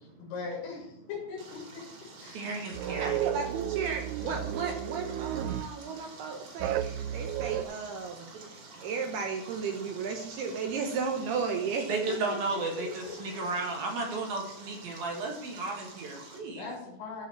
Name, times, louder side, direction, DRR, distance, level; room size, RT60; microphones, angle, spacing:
voice 1, 0.0-1.8 2.2-2.6 2.8-3.2 4.2-4.4 12.1-12.6 13.1-13.5 16.6-17.3, left 5 dB, 85° left, -3 dB, 5.6 m, -40 dB
Stream, 1.4-16.4, right 3 dB, 35° right, 3.0 m, -50 dB
voice 2, 2.2-3.2 8.3-8.5 8.7-8.8 11.9-16.6, right 3 dB, 55° right, 0 dB, 3.1 m, -34 dB
sound 1, 2.7-5.8 6.6-7.6, right 11 dB, 90° right, 3.3 m, -33 dB
voice 3, 3.0-12.0, right 5 dB, 70° right, 4 dB, 2.5 m, -34 dB
13.5 x 5.5 x 6.9 m, 0.76 s
omnidirectional pair, 5.7 m